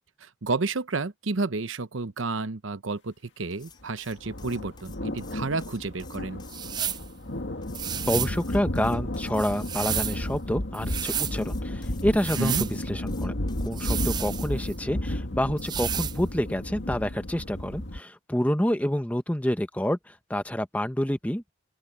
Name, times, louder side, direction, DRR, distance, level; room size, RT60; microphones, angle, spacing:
voice 1, 0.2-6.4 12.4-12.7, right 3 dB, 90° right, 0.9 m, -31 dB
sound 1, 3.5-7.0 7.6-10.1 10.9-13.7, left 7 dB, 25° left, 4.1 m, -53 dB
sound 2, 4.1-18.0, left 1 dB, 70° left, 1.8 m, -33 dB
sound 3, 6.5-7.1 7.7-8.4 9.3-10.2 10.7-11.4 12.1-12.7 13.7-14.7 15.6-16.2, right 9 dB, 20° right, 0.3 m, -31 dB
voice 2, 8.1-13.3 13.6-21.5, equal, 10° left, 1.0 m, -28 dB
open air
head